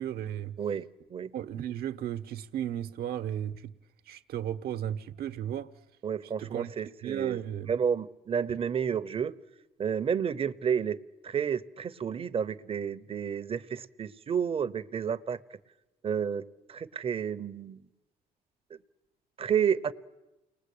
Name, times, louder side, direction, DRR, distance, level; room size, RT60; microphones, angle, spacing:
voice 1, 0.0-0.5 1.3-3.7 4.1-5.7 6.4-6.7 7.0-7.7 8.5-8.6, right 10 dB, 65° right, 1.1 m, -35 dB
voice 2, 0.6-1.3 6.0-7.4 7.7-9.3 9.8-11.0 11.2-15.4 16.0-16.4 16.7-17.8 19.4-19.9, right 7 dB, 35° right, 0.8 m, -30 dB
29.0 x 20.5 x 8.5 m
cardioid pair, 110°, 17 cm